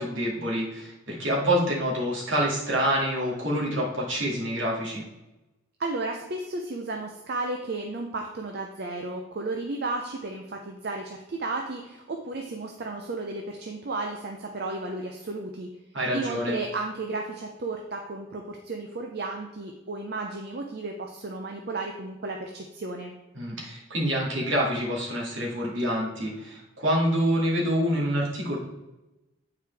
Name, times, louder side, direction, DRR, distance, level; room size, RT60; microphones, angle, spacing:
voice 1, 0.0-5.0 15.9-16.6 23.3-28.6, equal, 70° right, -4 dB, 2.2 m, -27 dB
voice 2, 5.8-15.7 16.1-23.1, right 2 dB, 55° right, 3 dB, 0.6 m, -33 dB
8.6 x 4.8 x 3.4 m, 1.0 s
head